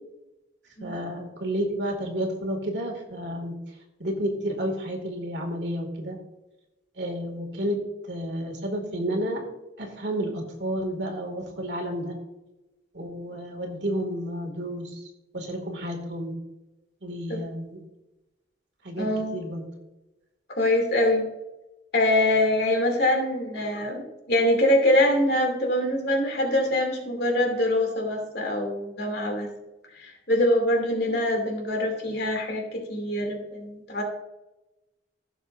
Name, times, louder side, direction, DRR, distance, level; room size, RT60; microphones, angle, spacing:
voice 1, 0.8-3.5 4.0-6.2 7.0-9.4 9.8-12.2 12.9-15.0 15.3-16.3 17.0-17.8 18.8-19.6, equal, 70° right, 2 dB, 2.3 m, -31 dB
voice 2, 19.0-19.4 20.5-21.3 21.9-29.5 29.9-34.0, left 1 dB, 60° left, 1 dB, 2.7 m, -24 dB
15.5 x 7.3 x 2.6 m, 0.99 s
head